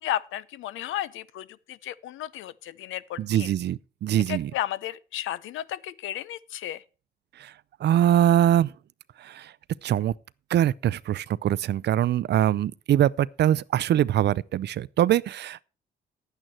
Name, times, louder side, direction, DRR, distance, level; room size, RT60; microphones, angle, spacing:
voice 1, 0.0-3.5 4.3-6.8, left 12 dB, 85° left, 0.7 m, -33 dB
voice 2, 3.2-4.5 7.4-7.5 7.8-8.7 9.2-9.5 9.8-10.1 10.5-15.6, right 11 dB, 60° right, 0.5 m, -23 dB
10.5 x 9.0 x 4.4 m
cardioid pair, 90°, 20 cm